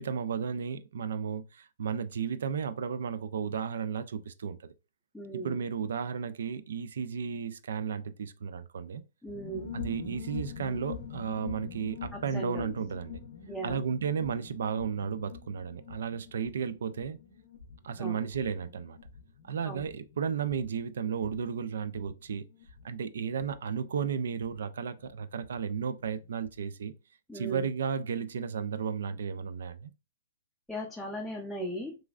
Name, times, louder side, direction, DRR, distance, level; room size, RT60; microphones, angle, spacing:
voice 1, 0.0-4.7 5.3-9.0 9.7-13.2 13.6-17.2 17.8-19.0 19.4-22.5 22.8-26.9 27.3-29.9, right 7 dB, 75° right, 0.3 m, -34 dB
voice 2, 5.1-5.6 9.2-9.7 12.3-12.7 13.5-13.8 18.0-18.2 19.7-19.8 27.3-27.7 30.7-32.0, right 1 dB, ahead, 0.5 m, -37 dB
sound 1, 9.3-25.6 25.8-25.9 26.1-26.5, left 7 dB, 65° left, 0.6 m, -45 dB
3.0 x 2.4 x 2.4 m
hypercardioid pair, 135°, 0 cm